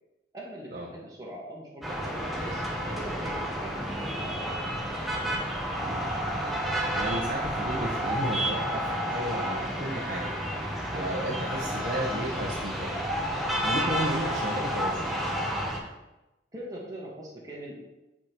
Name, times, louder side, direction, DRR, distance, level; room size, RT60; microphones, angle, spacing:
voice 1, 0.3-4.8 16.5-17.8, right 1 dB, 20° right, -5 dB, 1.4 m, -41 dB
sound 1, 1.8-15.8, equal, ahead, 0.8 m, -30 dB
voice 2, 6.9-10.3 10.6-13.0 13.6-15.1, right 1 dB, 50° right, -4 dB, 0.9 m, -33 dB
8.6 x 4.9 x 3.0 m, 0.98 s
head